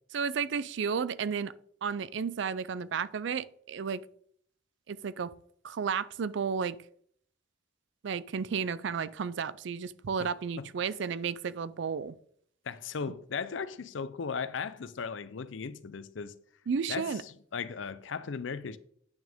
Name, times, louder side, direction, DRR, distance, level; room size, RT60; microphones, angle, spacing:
voice 1, 0.1-1.5 1.8-4.0 4.9-5.3 5.6-6.8 8.0-12.2 16.7-17.2, right 6 dB, 65° right, 0.4 m, -32 dB
voice 2, 12.6-16.3 16.9-17.1 17.5-18.8, left 5 dB, 70° left, 0.5 m, -36 dB
8.9 x 6.1 x 3.6 m
head